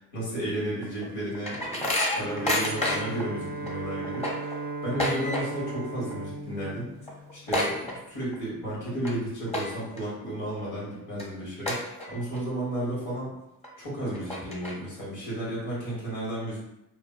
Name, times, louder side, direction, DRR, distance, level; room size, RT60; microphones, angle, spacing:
voice 1, 0.0-6.9 7.3-13.3 13.8-16.6, right 1 dB, 75° left, -6 dB, 1.4 m, -33 dB
sound 1, 0.8-3.3 3.7-3.8 4.0-5.8 6.0-6.4 6.7-6.8 7.0-8.4 8.9-9.1 9.5-10.0 10.5-10.6 11.2-11.3 11.7-12.4 12.8-12.9 13.6-13.7 14.1-15.0, left 1 dB, 15° left, 1.1 m, -29 dB
Bowed string instrument, 2.1-7.8, right 3 dB, 35° right, 0.4 m, -37 dB
3.2 x 2.2 x 2.3 m, 0.88 s
hypercardioid pair, 50°, 38 cm